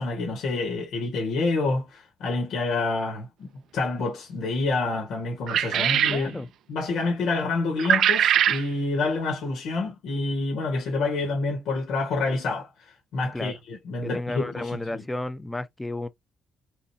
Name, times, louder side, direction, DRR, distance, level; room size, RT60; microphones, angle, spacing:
voice 1, 0.0-6.4 6.7-15.0, left 3 dB, 80° left, 1.7 m, -28 dB
sound 1, 5.5-6.2 7.8-8.6, right 10 dB, 75° right, 0.4 m, -21 dB
voice 2, 5.7-6.5 13.3-13.6 14.0-16.1, left 2 dB, 10° left, 0.7 m, -33 dB
4.1 x 3.9 x 2.9 m
cardioid pair, 90°, 0 cm